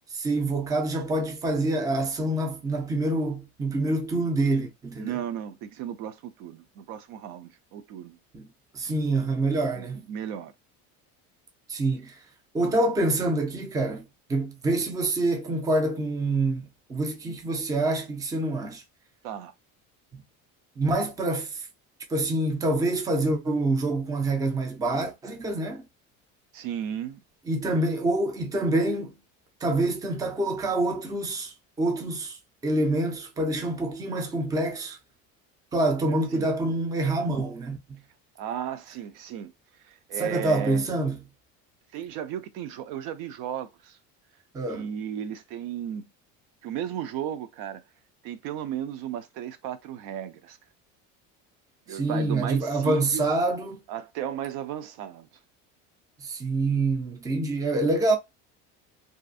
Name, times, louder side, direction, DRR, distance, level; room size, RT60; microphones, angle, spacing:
voice 1, 0.1-5.1 8.3-8.4 8.7-10.0 11.7-12.1 12.5-18.8 20.1-20.2 20.8-21.7 22.1-25.9 27.5-29.1 29.6-32.4 32.6-35.0 35.7-38.0 40.2-41.2 44.5-44.9 51.9-53.8 56.2-58.2, right 2 dB, 10° right, 0.4 m, -26 dB
voice 2, 5.0-8.2 9.8-10.5 17.3-17.4 19.2-19.5 26.5-27.2 36.3-36.5 38.4-39.5 39.8-40.8 41.9-44.0 44.7-46.0 46.6-47.8 48.2-50.6 51.9-53.3 53.9-55.3, right 9 dB, 75° right, 0.6 m, -35 dB
2.5 x 2.5 x 2.4 m
cardioid pair, 140°, 33 cm